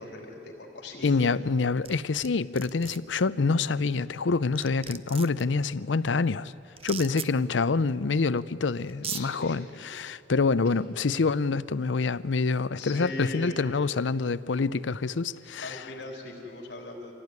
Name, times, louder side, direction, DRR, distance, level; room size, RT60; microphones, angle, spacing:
voice 1, 0.0-1.2 1.9-2.1 7.0-7.2 9.0-9.6 12.8-13.6 15.6-17.1, left 2 dB, 70° left, 3.7 m, -40 dB
voice 2, 1.0-6.5 6.8-15.8, left 4 dB, 85° left, 0.6 m, -26 dB
sound 1, 1.8-2.3 2.6-3.0 4.2-4.3 4.6-5.4 6.8-7.3 8.4-8.5 8.9-9.2, right 9 dB, 30° right, 0.6 m, -37 dB
26.0 x 17.0 x 9.6 m
head